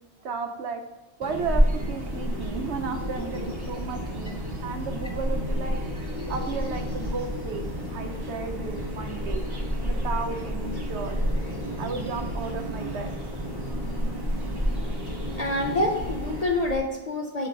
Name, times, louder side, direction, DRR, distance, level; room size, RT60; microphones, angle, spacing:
voice 1, 0.2-0.8 1.2-5.8 6.3-9.5 9.8-11.2 11.8-13.2 13.6-13.8, right 4 dB, 70° right, 6 dB, 0.9 m, -34 dB
sound 1, 1.2-16.4, equal, 20° right, 0.8 m, -35 dB
sound 2, 1.4-16.8, equal, 5° left, 2.0 m, -31 dB
voice 2, 15.4-17.5, left 2 dB, 40° left, 1 dB, 0.6 m, -27 dB
7.4 x 3.2 x 5.3 m, 1.2 s
omnidirectional pair, 1.2 m